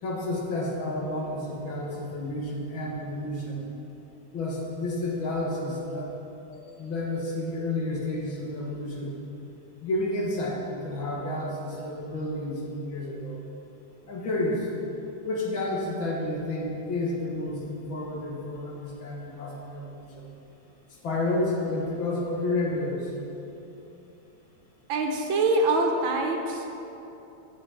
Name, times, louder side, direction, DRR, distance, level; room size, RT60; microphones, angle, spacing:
voice 1, 0.0-3.6 4.3-6.2 6.5-9.1 9.8-13.4 14.1-14.7 15.2-20.3 21.0-23.1, left 2 dB, 80° left, -3 dB, 2.5 m, -30 dB
voice 2, 24.9-26.7, right 2 dB, 85° right, 2 dB, 1.9 m, -24 dB
13.0 x 6.3 x 5.7 m, 2.9 s
omnidirectional pair, 2.1 m